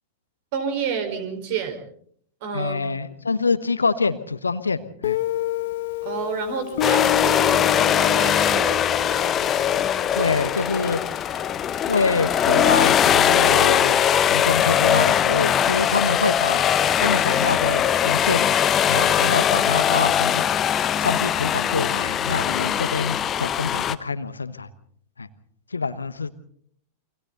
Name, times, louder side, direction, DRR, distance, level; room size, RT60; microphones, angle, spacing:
voice 1, 0.5-1.8 2.4-2.8 6.0-9.5, right 7 dB, 50° right, 8 dB, 4.7 m, -30 dB
voice 2, 2.5-5.2 10.1-11.0 11.9-16.6 17.0-18.5 18.9-20.4 21.0-24.7 25.2-25.3 25.7-26.3, left 4 dB, 75° left, 13 dB, 1.2 m, -25 dB
Guitar, 5.0-11.7, left 15 dB, 55° left, 0.9 m, -29 dB
sound 1, 6.8-24.0, left 9 dB, 25° left, 1.0 m, -21 dB
30.0 x 24.0 x 4.0 m, 0.63 s
figure-of-eight pair, 90°, 0 cm